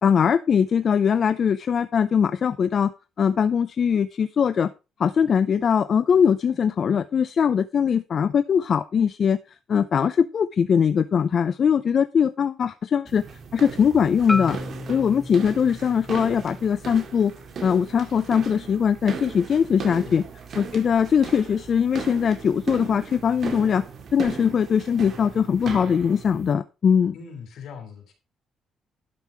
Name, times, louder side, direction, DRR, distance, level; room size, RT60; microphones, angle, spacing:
voice 1, 0.0-2.9 3.2-4.7 5.0-9.4 9.7-13.2 13.5-14.6 14.9-17.3 17.6-20.2 20.6-23.8 24.1-27.1, left 7 dB, 50° left, 0.5 m, -21 dB
sound 1, 13.1-26.5, right 5 dB, 55° right, 2.3 m, -37 dB
Marimba xylophone, 14.3-18.5, left 2 dB, 10° left, 0.7 m, -35 dB
voice 2, 19.9-20.2 27.1-28.1, left 6 dB, 75° left, 3.4 m, -41 dB
11.5 x 5.5 x 4.5 m
cardioid pair, 90°, 0 cm